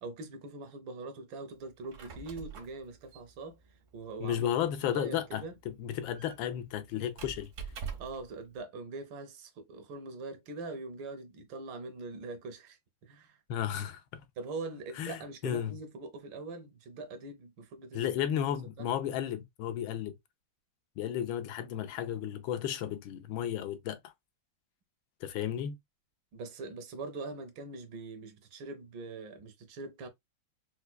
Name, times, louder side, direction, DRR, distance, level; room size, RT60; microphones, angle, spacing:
voice 1, 0.0-3.6 3.9-4.5 4.9-5.6 8.0-13.4 14.4-18.1 18.8-18.9 26.3-30.1, right 3 dB, 80° right, 1.5 m, -42 dB
Squeak, 1.7-8.3, right 6 dB, 60° right, 0.8 m, -46 dB
voice 2, 4.2-7.5 13.5-14.2 15.0-15.7 17.9-20.2 21.0-24.1 25.2-25.8, left 10 dB, 90° left, 1.4 m, -33 dB
4.7 x 2.2 x 2.2 m
omnidirectional pair, 2.1 m